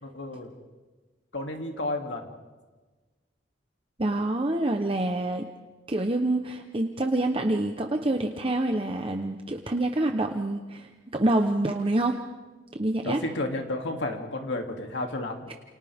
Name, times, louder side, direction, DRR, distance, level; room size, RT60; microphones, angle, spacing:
voice 1, 0.0-0.5 1.3-2.3 13.0-15.5, left 2 dB, 90° left, 2 dB, 2.8 m, -32 dB
voice 2, 4.0-5.5 5.9-12.2 12.7-13.2, right 1 dB, 30° right, 4 dB, 1.0 m, -26 dB
30.0 x 28.5 x 3.6 m, 1.3 s
head